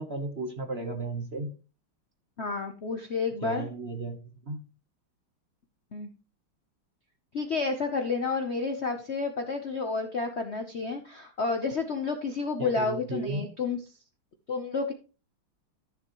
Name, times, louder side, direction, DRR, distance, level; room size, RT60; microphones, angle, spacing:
voice 1, 0.0-1.5 3.4-4.6 12.6-13.5, right 2 dB, 40° right, 6 dB, 1.1 m, -34 dB
voice 2, 2.4-3.7 5.9-6.1 7.3-13.8 14.5-14.9, left 4 dB, 50° left, 6 dB, 0.8 m, -30 dB
14.0 x 7.2 x 3.0 m, 0.34 s
omnidirectional pair, 2.2 m